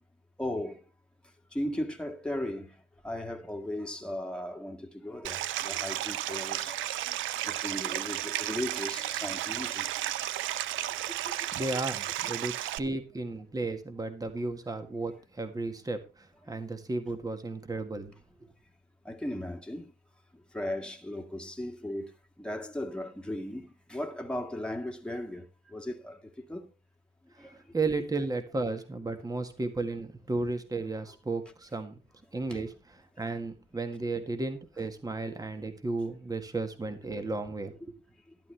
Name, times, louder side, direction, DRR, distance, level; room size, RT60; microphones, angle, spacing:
voice 1, 0.4-0.8 1.5-7.2 7.4-10.1 11.2-11.3 11.7-11.9 12.4-12.5 19.0-19.9 20.5-26.7 27.4-27.6 32.5-32.6, left 1 dB, 5° left, 2.0 m, -37 dB
Stream, 5.2-12.8, right 13 dB, 80° right, 0.5 m, -33 dB
voice 2, 11.5-18.1 27.4-31.9 32.3-37.7, right 3 dB, 20° right, 1.7 m, -34 dB
12.0 x 11.5 x 3.4 m
cardioid pair, 90°, 20 cm